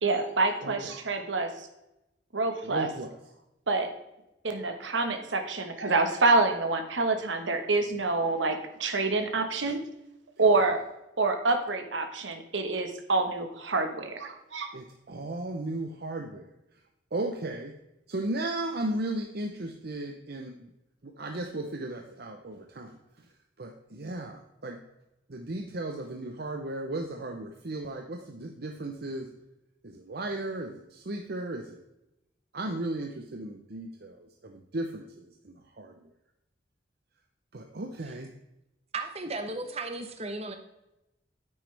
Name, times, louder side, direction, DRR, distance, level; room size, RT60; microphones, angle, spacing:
voice 1, 0.0-1.5 2.3-2.9 3.7-3.9 4.4-9.8 10.4-10.8 11.2-14.7, right 3 dB, 90° right, 6 dB, 1.3 m, -27 dB
voice 2, 0.6-0.9 2.6-3.2 14.7-16.5 17.1-17.7 18.1-20.7 21.0-23.3 23.6-24.8 25.3-29.3 29.8-31.8 32.5-36.1 37.5-38.3, right 2 dB, 60° right, 4 dB, 0.8 m, -35 dB
voice 3, 38.9-40.6, right 2 dB, 35° right, 6 dB, 1.0 m, -35 dB
9.3 x 9.2 x 3.4 m, 0.92 s
head